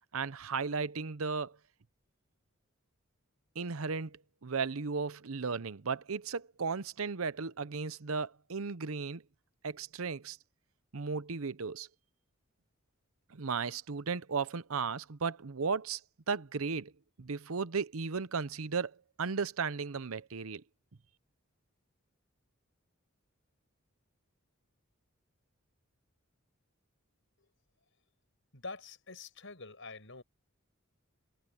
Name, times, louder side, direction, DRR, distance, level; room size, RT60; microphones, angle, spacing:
voice 1, 0.1-1.5 3.6-9.2 9.6-10.4 10.9-11.9 13.3-16.0 16.3-16.9 17.2-20.6, right 5 dB, 90° right, 0.8 m, -35 dB
voice 2, 28.5-30.2, left 3 dB, 65° left, 7.2 m, -46 dB
head